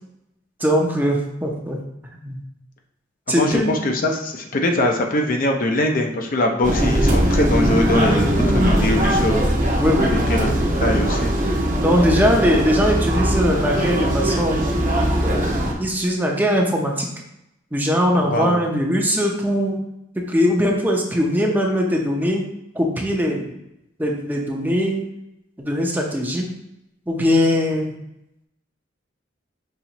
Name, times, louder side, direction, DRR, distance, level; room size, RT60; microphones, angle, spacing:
voice 1, 0.6-1.8 2.2-2.4 3.3-3.8 9.7-10.2 11.8-14.7 15.2-15.5 15.8-17.1 17.7-19.8 20.1-22.4 22.7-23.5 24.0-25.0 25.6-26.5 27.1-28.0, equal, 10° right, 0 dB, 0.6 m, -20 dB
voice 2, 3.3-9.4 10.3-10.5 10.8-11.3 18.2-18.6, left 1 dB, 45° left, 3 dB, 0.5 m, -22 dB
sound 1, 6.6-15.7, right 1 dB, 45° right, 0.9 m, -20 dB
5.5 x 3.1 x 2.9 m, 0.83 s
head